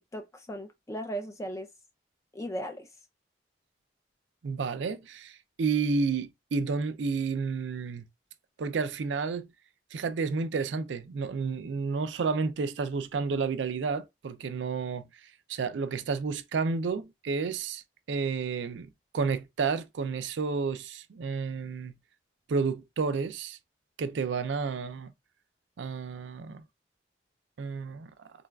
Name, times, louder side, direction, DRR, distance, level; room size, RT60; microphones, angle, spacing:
voice 1, 0.1-1.7 2.3-2.9, equal, 15° left, 0.4 m, -37 dB
voice 2, 4.4-8.1 8.6-9.5 9.9-15.1 15.5-17.8 18.1-18.9 19.1-21.9 22.5-23.6 24.0-25.1 25.8-26.6 27.6-28.1, right 5 dB, 80° right, 0.4 m, -31 dB
3.9 x 2.3 x 2.2 m
head